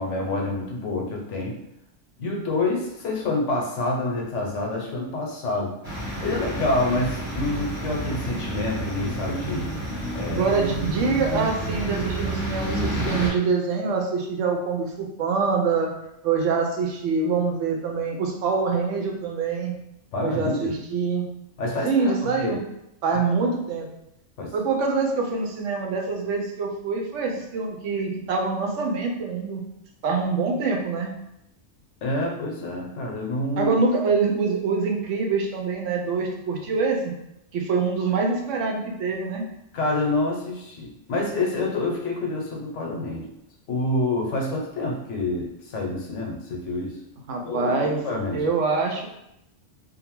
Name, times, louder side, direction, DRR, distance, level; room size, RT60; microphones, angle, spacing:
voice 1, 0.0-1.6 2.2-5.7 6.2-9.7 10.1-10.4 20.1-20.7 21.6-22.6 24.4-24.5 32.0-33.7 39.7-43.3 43.7-47.0 47.4-48.5, left 2 dB, 80° left, 0 dB, 1.0 m, -27 dB
sound 1, 5.8-13.3, right 1 dB, 15° left, 0.9 m, -29 dB
voice 2, 10.2-15.9 16.2-19.7 20.2-21.2 21.8-22.6 23.0-23.9 24.5-29.6 30.0-31.1 33.6-37.1 37.5-39.4 47.3-48.0 48.3-49.1, right 4 dB, 80° right, 1 dB, 0.9 m, -25 dB
2.6 x 2.2 x 2.9 m, 0.83 s
omnidirectional pair, 1.2 m